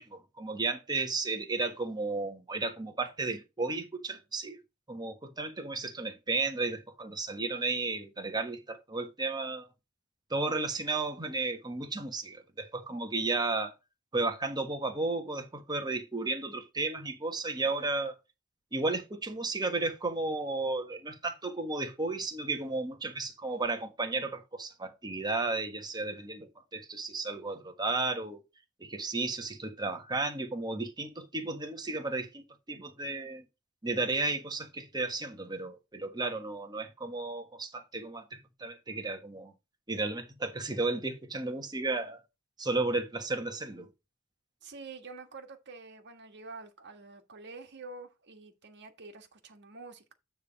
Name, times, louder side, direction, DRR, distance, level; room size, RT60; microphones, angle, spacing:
voice 1, 0.0-4.6 4.9-9.7 10.3-13.7 14.1-18.2 18.7-28.4 28.8-33.4 33.8-39.5 39.9-42.2 42.6-43.9, right 3 dB, 20° right, 1.4 m, -33 dB
voice 2, 44.6-50.1, right 3 dB, 55° right, 1.6 m, -47 dB
9.4 x 3.5 x 5.2 m
head